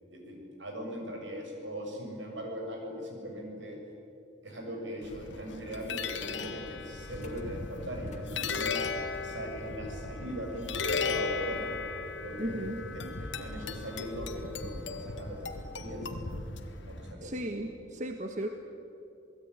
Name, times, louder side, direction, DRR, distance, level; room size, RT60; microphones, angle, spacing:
voice 1, 0.1-3.8 4.4-8.8 9.2-11.8 12.2-16.2 16.8-17.4 17.7-17.8, equal, 80° right, 1 dB, 7.1 m, -40 dB
sound 1, 5.0-17.1, left 4 dB, 75° left, 1.8 m, -37 dB
sound 2, 6.1-16.4, equal, 40° left, 2.2 m, -56 dB
voice 2, 12.4-12.8 17.2-18.5, right 1 dB, 40° right, 5 dB, 1.4 m, -35 dB
28.0 x 19.5 x 9.8 m, 2.9 s
head